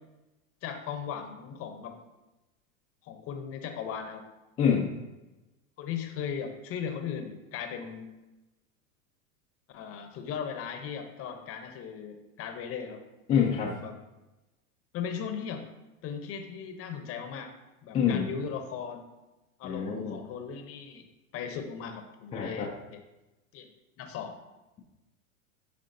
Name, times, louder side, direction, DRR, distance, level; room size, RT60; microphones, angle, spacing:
voice 1, 0.6-2.0 3.0-4.2 5.8-8.1 9.7-13.0 13.8-14.0 14.9-15.7 16.0-17.5 17.8-19.1 19.6-21.1 21.3-23.0 23.5-23.7 24.0-24.4, left 7 dB, 35° left, 6 dB, 0.7 m, -37 dB
voice 2, 4.6-4.9 13.3-13.8 17.9-18.3 19.6-20.2 22.3-22.7, left 7 dB, 15° left, -2 dB, 0.3 m, -26 dB
10.0 x 3.6 x 2.6 m, 1.0 s
supercardioid pair, 125°, 42 cm